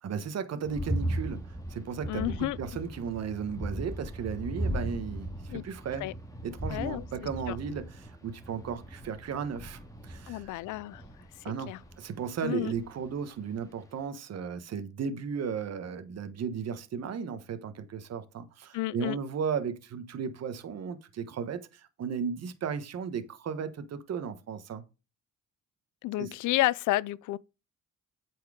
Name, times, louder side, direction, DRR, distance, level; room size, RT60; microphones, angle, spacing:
voice 1, 0.0-6.1 6.4-10.5 11.4-24.8 26.2-26.4, right 6 dB, 55° right, 1.2 m, -35 dB
sound 1, 0.6-12.0 12.7-13.1 13.5-13.6, right 1 dB, 10° left, 1.9 m, -37 dB
voice 2, 2.1-2.6 5.5-5.6 6.0-6.1 6.7-7.0 7.5-7.6 10.3-11.0 11.7-11.8 12.4-12.7 18.7-19.2 26.0-27.4, left 17 dB, 80° left, 0.4 m, -30 dB
8.3 x 4.6 x 4.9 m
cardioid pair, 90°, 30 cm